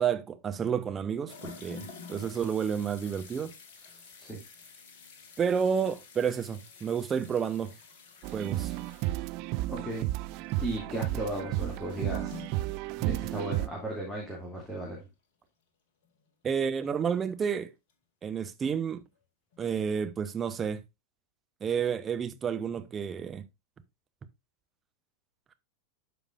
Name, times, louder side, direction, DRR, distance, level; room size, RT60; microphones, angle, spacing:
voice 1, 0.0-3.5 5.4-7.7 8.3-8.7 16.4-17.7 18.2-19.0 19.6-20.8 21.6-23.4, right 7 dB, 20° right, 0.8 m, -30 dB
sound 1, 1.3-13.7 14.0-14.1 16.0-16.1 17.9-18.0 19.5-19.6 20.5-20.6, left 5 dB, 50° left, 1.8 m, -50 dB
sound 2, 8.2-13.7, right 17 dB, 45° right, 0.4 m, -33 dB
voice 2, 9.7-10.1 10.6-12.4 13.0-15.0, right 1 dB, 10° left, 2.4 m, -35 dB
12.0 x 5.1 x 2.4 m
figure-of-eight pair, 90°, 0 cm